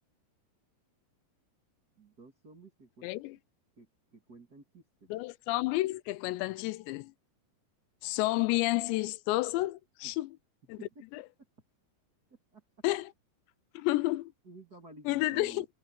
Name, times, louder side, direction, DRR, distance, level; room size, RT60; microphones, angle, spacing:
voice 1, 2.0-3.1 3.8-4.8 10.0-10.2 10.8-11.2 12.5-12.6 14.4-15.6, right 3 dB, 30° right, 2.0 m, -52 dB
voice 2, 3.0-3.4 5.1-7.1 8.0-10.4 10.7-10.8 11.1-11.2 12.8-13.1 13.8-14.3 15.1-15.7, left 19 dB, 85° left, 2.8 m, -30 dB
omnidirectional pair, 5.1 m